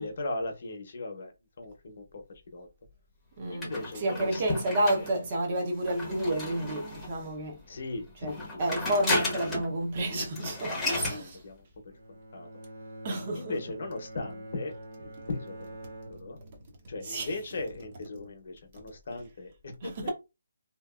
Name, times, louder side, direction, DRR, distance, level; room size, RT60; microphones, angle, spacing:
voice 1, 0.0-1.3 1.6-2.7 3.5-5.1 7.7-8.6 10.1-10.6 10.9-12.5 13.3-15.7 16.1-16.4 16.9-20.1, left 2 dB, 50° left, 0.8 m, -38 dB
voice 2, 3.4-7.6 8.2-8.3 8.6-11.4 13.0-13.6 17.0-17.3 19.8-20.1, right 1 dB, 30° right, 0.8 m, -30 dB
sound 1, 3.6-7.3 8.2-9.8 10.0-10.1 10.3-11.2, left 2 dB, 5° left, 0.8 m, -34 dB
Bowed string instrument, 11.9-17.1, right 1 dB, 65° right, 0.7 m, -46 dB
2.8 x 2.4 x 2.4 m
hypercardioid pair, 165°, 0 cm